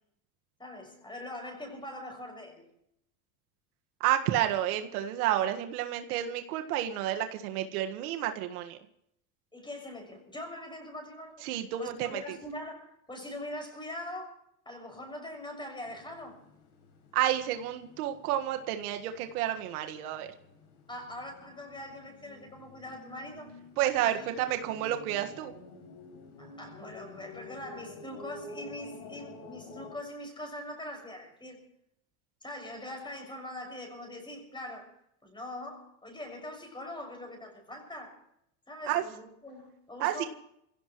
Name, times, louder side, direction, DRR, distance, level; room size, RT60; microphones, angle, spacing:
voice 1, 0.6-2.7 9.5-11.5 11.8-14.4 14.6-16.4 20.9-23.5 24.1-24.6 26.4-31.6 32.4-34.9 35.2-38.2 38.7-40.3, left 1 dB, 10° left, 6.5 m, -42 dB
voice 2, 4.0-8.8 11.4-12.2 17.1-20.3 23.8-25.5 38.9-39.0 40.0-40.3, right 12 dB, 80° right, 1.8 m, -30 dB
sound 1, 15.9-30.0, left 2 dB, 65° left, 7.3 m, -50 dB
27.5 x 16.5 x 3.1 m
supercardioid pair, 115°, 43 cm